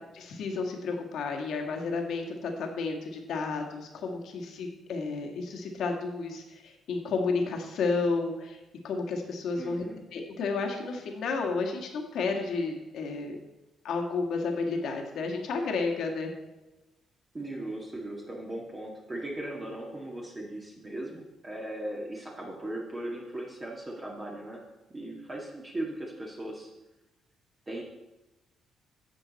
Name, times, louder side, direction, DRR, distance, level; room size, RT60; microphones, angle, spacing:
voice 1, 0.1-8.6 8.8-9.8 10.1-13.3 13.8-16.3, left 4 dB, 75° left, 2 dB, 1.7 m, -31 dB
voice 2, 9.6-10.0 17.3-24.6 24.9-26.7 27.7-27.8, right 1 dB, 25° right, -3 dB, 1.8 m, -38 dB
10.5 x 7.1 x 4.1 m, 1.1 s
cardioid pair, 90°, 0 cm